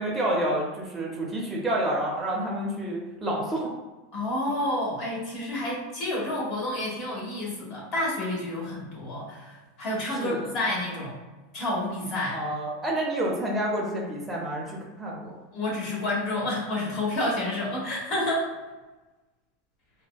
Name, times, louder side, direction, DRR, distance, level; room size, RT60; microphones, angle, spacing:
voice 1, 0.0-3.7 10.2-10.4 12.3-15.4, right 1 dB, 5° right, -5 dB, 0.6 m, -29 dB
voice 2, 4.1-11.2 11.5-12.4 15.5-18.5, left 1 dB, 40° left, -4 dB, 1.0 m, -29 dB
3.4 x 2.1 x 2.2 m, 1.2 s
supercardioid pair, 150°, 0 cm